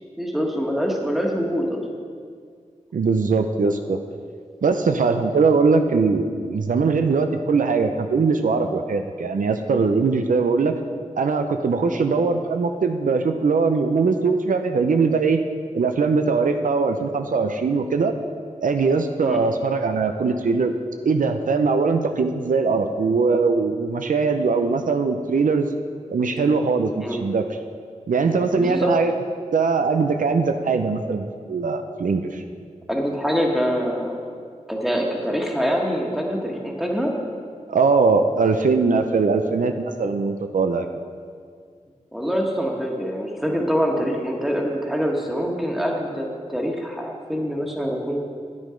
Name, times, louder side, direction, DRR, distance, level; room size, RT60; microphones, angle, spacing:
voice 1, 0.2-1.8 11.9-12.1 19.2-19.4 27.0-27.2 28.5-28.9 32.9-34.2 34.7-37.1 42.1-48.2, equal, ahead, 0 dB, 1.5 m, -25 dB
voice 2, 2.9-4.0 4.6-10.8 11.2-15.4 15.7-18.1 18.6-20.7 21.0-25.7 26.1-27.4 28.1-29.1 29.5-32.4 37.7-40.9, right 4 dB, 80° right, 6 dB, 0.6 m, -21 dB
9.8 x 9.5 x 5.1 m, 2.1 s
wide cardioid pair, 95°, 14 cm